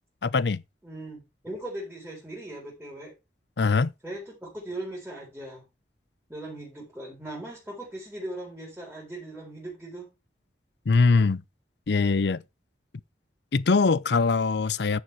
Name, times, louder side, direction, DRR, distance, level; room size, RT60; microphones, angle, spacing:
voice 1, 0.2-0.6 3.6-3.9 10.9-11.4 11.9-12.4 13.5-15.0, left 4 dB, 70° left, 0.6 m, -22 dB
voice 2, 0.8-3.1 4.0-5.6 6.3-10.1, right 1 dB, 10° right, 4.2 m, -39 dB
11.0 x 6.7 x 4.6 m
head